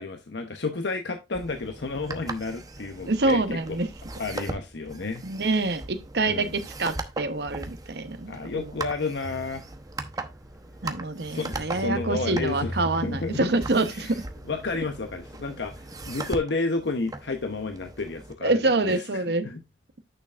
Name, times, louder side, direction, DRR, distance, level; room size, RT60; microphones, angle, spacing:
voice 1, 0.0-3.6 4.2-5.2 6.3-6.5 8.3-9.7 11.3-13.5 14.0-14.1 14.5-19.6, left 3 dB, 80° left, 0.9 m, -31 dB
sound 1, 1.3-18.3, right 2 dB, 20° right, 0.9 m, -39 dB
voice 2, 3.1-3.9 5.2-8.7 10.8-14.2 18.4-19.5, right 2 dB, 65° right, 1.0 m, -26 dB
sound 2, 9.2-15.8, left 1 dB, 5° right, 1.2 m, -40 dB
8.9 x 6.6 x 2.5 m
head